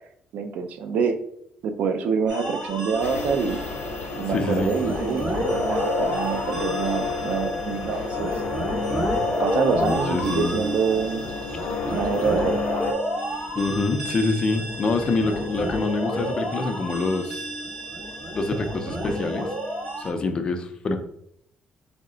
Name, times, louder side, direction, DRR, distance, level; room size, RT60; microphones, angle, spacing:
voice 1, 0.3-1.2 1.6-3.6 4.2-8.4 9.4-11.3 11.9-12.6, right 5 dB, 65° right, 7 dB, 0.4 m, -26 dB
sound 1, 2.3-20.1, right 1 dB, 45° right, 1.2 m, -30 dB
sound 2, 3.0-12.9, left 5 dB, 80° left, 0.6 m, -31 dB
voice 2, 4.3-4.7 9.7-10.6 13.6-17.4 18.3-19.5 20.0-21.0, left 3 dB, 30° left, 6 dB, 0.4 m, -26 dB
4.5 x 2.1 x 3.7 m, 0.72 s
cardioid pair, 160°, 3 cm